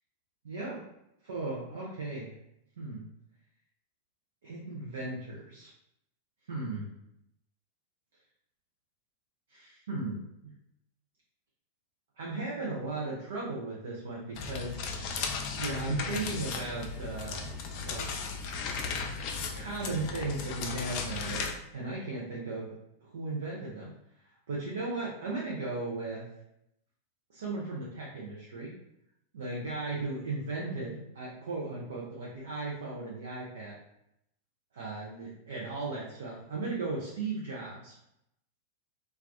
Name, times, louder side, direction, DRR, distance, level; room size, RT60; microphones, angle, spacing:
voice 1, 0.4-0.8 1.2-2.3 2.8-3.0 4.4-5.7 6.5-6.9 9.5-10.5 12.2-14.9 15.6-17.5 17.8-18.2 19.5-22.8 23.0-23.9 24.5-26.2 27.3-28.7 29.3-33.8 34.7-38.0, right 3 dB, 60° right, -4 dB, 0.5 m, -36 dB
sound 1, 14.3-21.5, left 5 dB, 45° left, 0.3 m, -36 dB
2.3 x 2.3 x 2.3 m, 0.81 s
figure-of-eight pair, 90°, 0 cm